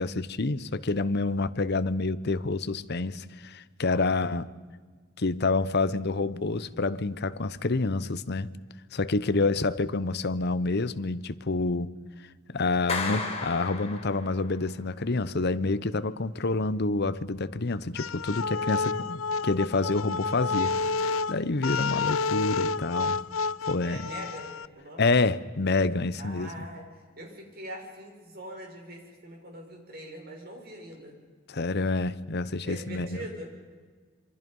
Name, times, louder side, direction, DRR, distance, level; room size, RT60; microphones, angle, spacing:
voice 1, 0.0-4.5 5.2-8.5 8.9-11.9 12.5-23.2 23.7-24.0 25.0-26.7 31.5-33.2, left 3 dB, 55° left, 14 dB, 0.9 m, -28 dB
Clapping, 12.9-14.5, left 4 dB, 30° left, 3.9 m, -33 dB
sound 1, 18.0-24.7, left 4 dB, 85° left, 0.6 m, -30 dB
voice 2, 23.8-25.1 26.2-26.9 27.2-31.2 32.6-33.5, right 1 dB, 50° right, 1 dB, 6.4 m, -42 dB
27.5 x 24.0 x 5.5 m, 1.5 s
head